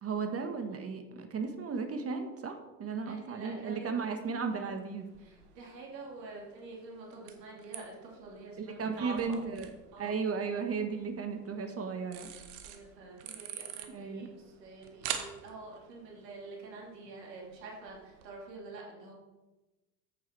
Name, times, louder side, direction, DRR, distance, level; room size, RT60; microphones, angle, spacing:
voice 1, 0.0-5.1 8.6-9.7 10.0-12.3 13.9-14.3, right 5 dB, 30° right, 6 dB, 1.3 m, -35 dB
voice 2, 3.0-4.0 5.2-9.4 9.9-10.1 12.6-19.1, right 3 dB, 80° right, -2 dB, 3.0 m, -47 dB
sound 1, 4.2-18.3, right 9 dB, 65° right, 1.4 m, -47 dB
8.3 x 7.3 x 4.6 m, 1.1 s
hypercardioid pair, 85°, 49 cm